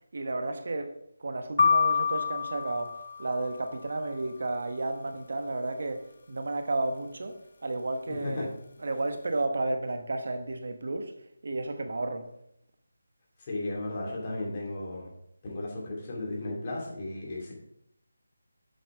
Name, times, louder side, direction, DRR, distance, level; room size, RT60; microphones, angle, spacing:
voice 1, 0.1-0.9 1.2-8.5 8.8-12.3, right 2 dB, 60° right, 1.1 m, -32 dB
sound 1, 1.6-3.7, left 6 dB, 55° left, 0.4 m, -27 dB
voice 2, 8.1-8.5 13.5-15.1 15.4-17.5, left 2 dB, 30° left, 2.5 m, -35 dB
7.7 x 5.8 x 4.8 m
figure-of-eight pair, 165°, 0 cm